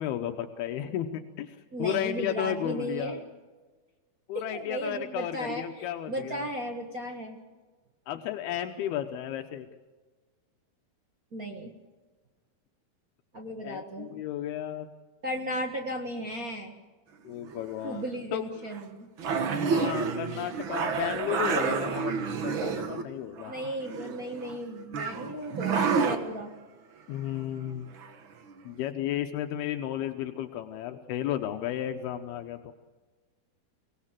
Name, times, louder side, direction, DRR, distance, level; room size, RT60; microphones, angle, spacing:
voice 1, 0.0-3.2 4.3-6.4 8.1-9.7 13.6-14.9 17.2-18.1 18.3-18.4 19.7-22.1 22.4-23.5 27.1-28.0 28.6-32.7, left 11 dB, 80° left, 6 dB, 2.9 m, -33 dB
voice 2, 1.7-3.2 4.3-7.4 11.3-11.7 13.3-14.1 15.2-16.7 17.8-19.1 23.5-26.8, right 1 dB, 45° right, 1 dB, 1.1 m, -35 dB
sound 1, 17.4-17.9 18.7-18.8 19.2-23.0 23.4-24.6 24.9-26.2 28.0-28.1 28.5-28.6, right 5 dB, 75° right, 1.1 m, -29 dB
24.5 x 18.5 x 7.5 m, 1.3 s
omnidirectional pair, 4.4 m